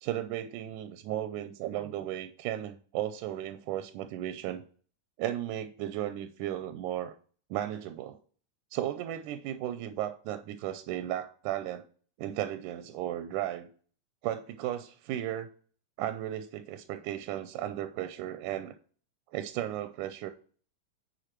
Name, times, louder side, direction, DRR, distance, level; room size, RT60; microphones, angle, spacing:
voice 1, 0.0-4.6 5.2-7.1 7.5-8.2 8.7-11.9 12.2-13.7 14.2-15.5 16.0-18.7 19.3-20.3, right 12 dB, 85° right, 9 dB, 2.1 m, -35 dB
9.9 x 4.7 x 4.5 m, 0.43 s
omnidirectional pair, 3.7 m